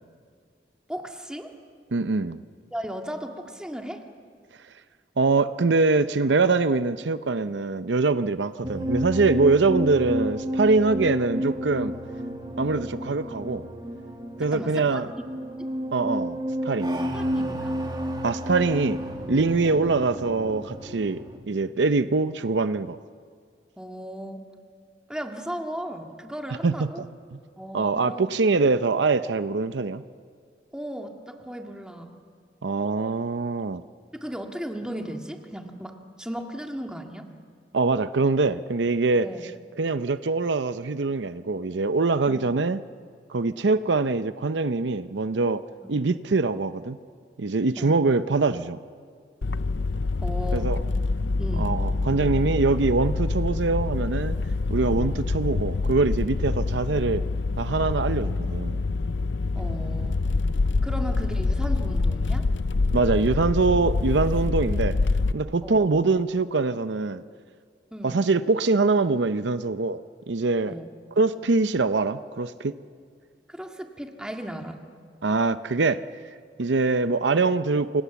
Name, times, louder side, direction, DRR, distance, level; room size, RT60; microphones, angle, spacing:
voice 1, 0.9-1.5 2.7-4.0 14.5-15.0 17.1-17.8 19.6-19.9 23.8-24.4 25.1-27.0 27.6-28.3 30.7-32.1 34.2-37.3 39.2-39.5 42.3-42.5 47.8-48.0 50.2-50.7 51.4-51.7 59.6-60.2 60.8-62.4 65.6-65.8 67.9-68.2 70.7-70.9 73.5-74.8, equal, 5° right, 3 dB, 1.9 m, -36 dB
voice 2, 1.9-2.4 5.2-11.9 12.6-13.7 14.4-15.1 15.9-16.9 18.2-19.0 19.3-23.0 26.6-27.1 27.3-27.4 27.7-30.0 32.6-33.8 37.7-39.3 39.8-42.8 43.3-45.6 45.9-47.0 47.4-48.8 50.5-50.8 51.6-54.4 54.7-57.2 57.6-58.8 62.9-65.0 65.3-67.2 68.0-70.0 70.3-70.7 71.2-72.8 75.2-76.0 76.6-78.0, right 3 dB, 80° right, 12 dB, 0.7 m, -23 dB
sound 1, 8.6-21.4, equal, 25° right, 2.2 m, -31 dB
sound 2, 49.4-65.3, left 3 dB, 80° left, 0.6 m, -26 dB
29.0 x 25.0 x 7.1 m, 2.1 s
head